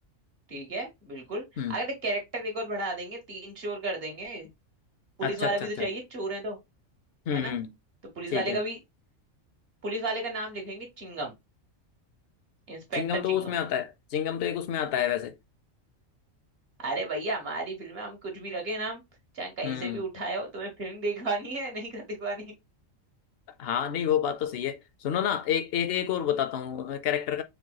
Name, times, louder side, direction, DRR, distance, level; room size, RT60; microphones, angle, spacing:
voice 1, 0.5-4.5 5.2-6.6 7.3-7.5 8.1-8.8 9.8-11.3 12.7-13.5 16.8-19.0 19.3-22.5, right 2 dB, 50° right, 1.3 m, -33 dB
voice 2, 5.2-5.9 7.3-7.7 8.3-8.6 13.0-15.4 19.6-20.0 23.6-27.4, left 9 dB, 65° left, 0.6 m, -29 dB
4.5 x 2.9 x 2.2 m
omnidirectional pair, 1.3 m